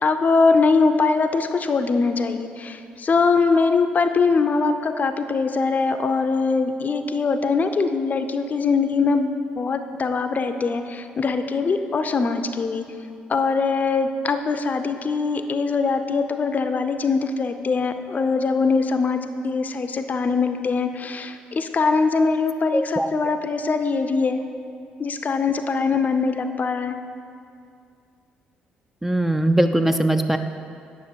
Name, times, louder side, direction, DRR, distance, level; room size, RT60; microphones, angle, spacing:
voice 1, 0.0-12.8 13.3-19.2 19.4-24.4 25.0-27.0, left 4 dB, 40° left, 8 dB, 0.6 m, -22 dB
voice 2, 22.7-23.1 29.0-30.4, right 1 dB, 5° right, 7 dB, 0.4 m, -20 dB
9.5 x 5.8 x 4.6 m, 2.4 s
hypercardioid pair, 55°, 4 cm